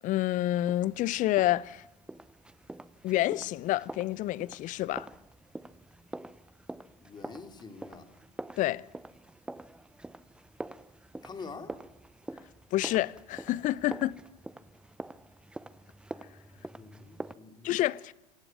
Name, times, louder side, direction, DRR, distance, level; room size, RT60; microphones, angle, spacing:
voice 1, 0.0-1.8 3.0-5.1 8.6-8.8 12.7-14.2 17.6-18.1, left 15 dB, 40° left, 0.7 m, -28 dB
sound 1, 0.7-17.3, right 1 dB, 5° right, 0.7 m, -46 dB
voice 2, 7.0-8.1 11.2-11.8 16.5-17.7, left 4 dB, 20° left, 3.0 m, -46 dB
26.5 x 16.0 x 8.8 m
figure-of-eight pair, 80°, 20 cm